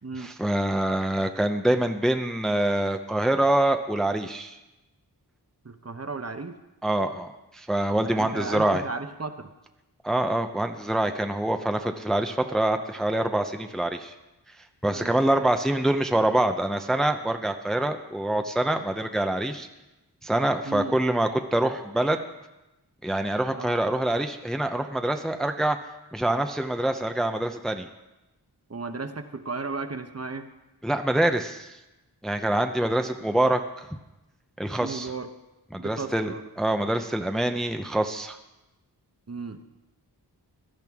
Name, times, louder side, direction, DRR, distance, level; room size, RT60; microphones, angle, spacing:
voice 1, 0.2-4.6 6.8-8.8 10.0-14.1 14.8-19.7 20.2-22.2 23.0-25.8 26.1-27.9 30.8-31.7 32.2-33.9 34.6-35.1 35.7-38.4, right 1 dB, ahead, 6 dB, 0.7 m, -25 dB
voice 2, 5.6-6.6 8.0-9.5 14.9-15.2 20.6-21.0 23.5-23.8 28.7-30.5 33.2-33.3 34.8-35.3 35.7-36.5 39.3-39.6, right 3 dB, 40° right, 7 dB, 0.9 m, -35 dB
16.5 x 12.0 x 3.6 m, 0.99 s
wide cardioid pair, 70°, 40 cm